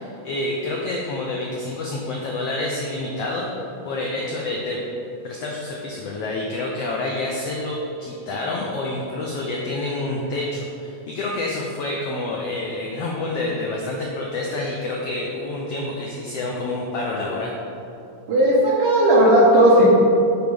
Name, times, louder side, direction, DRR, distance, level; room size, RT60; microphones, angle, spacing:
voice 1, 0.0-3.5 3.8-4.8 5.2-17.5, left 2 dB, 85° left, -2 dB, 1.4 m, -28 dB
voice 2, 18.3-19.9, right 1 dB, 65° right, -5 dB, 1.6 m, -15 dB
7.0 x 4.6 x 5.3 m, 2.9 s
omnidirectional pair, 3.7 m